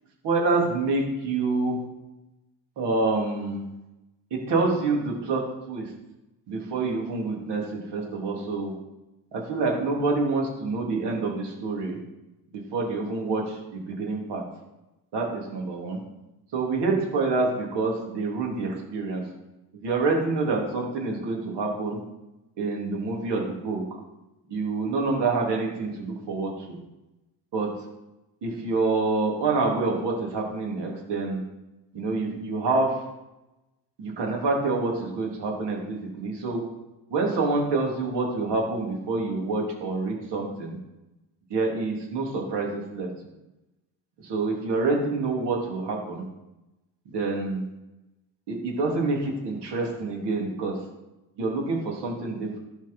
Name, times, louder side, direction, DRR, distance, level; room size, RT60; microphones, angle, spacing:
voice 1, 0.2-1.8 2.8-3.6 4.3-5.9 6.5-8.7 9.3-12.0 12.5-14.4 15.1-16.0 16.5-19.2 19.7-22.0 22.6-23.8 24.5-26.8 27.5-27.7 28.4-31.4 31.9-33.0 34.0-36.6 37.1-40.8 41.5-43.1 44.2-46.2 47.1-47.6 48.5-50.8 51.4-52.6, right 3 dB, 65° right, -1 dB, 3.4 m, -27 dB
12.0 x 5.3 x 5.6 m, 0.99 s
supercardioid pair, 75°, 44 cm